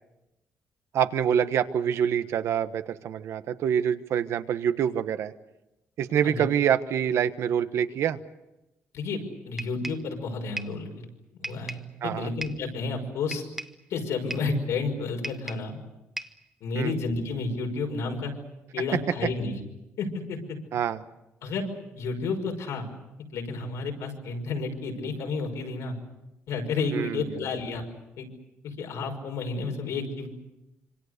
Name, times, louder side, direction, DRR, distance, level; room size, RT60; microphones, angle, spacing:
voice 1, 0.9-5.3 6.0-8.2 12.0-12.3 16.7-16.9 20.7-21.0 26.9-27.5, right 9 dB, 70° right, 11 dB, 1.2 m, -26 dB
voice 2, 8.9-10.9 11.4-13.4 13.9-15.8 16.6-18.3 18.7-19.6 20.0-20.6 21.4-21.7 22.0-22.9 23.3-26.0 26.5-27.8 28.2-28.3 28.6-30.3, left 4 dB, 85° left, 3 dB, 5.7 m, -31 dB
sound 1, 9.6-10.1 10.6-10.8 11.4-11.9 12.4-12.7 13.3-13.8 14.3-14.6 15.2-15.7 16.2-16.5, right 1 dB, 5° right, 1.1 m, -37 dB
26.5 x 26.0 x 6.7 m, 0.96 s
cardioid pair, 145°, 5 cm